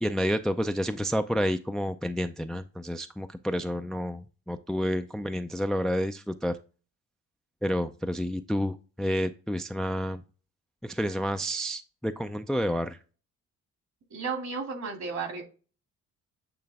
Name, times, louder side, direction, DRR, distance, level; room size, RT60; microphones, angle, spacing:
voice 1, 0.0-6.6 7.6-10.2 10.8-13.0, equal, ahead, 0.4 m, -29 dB
voice 2, 14.1-15.4, right 4 dB, 65° right, 2.4 m, -33 dB
8.8 x 3.3 x 3.4 m
cardioid pair, 90°, 30 cm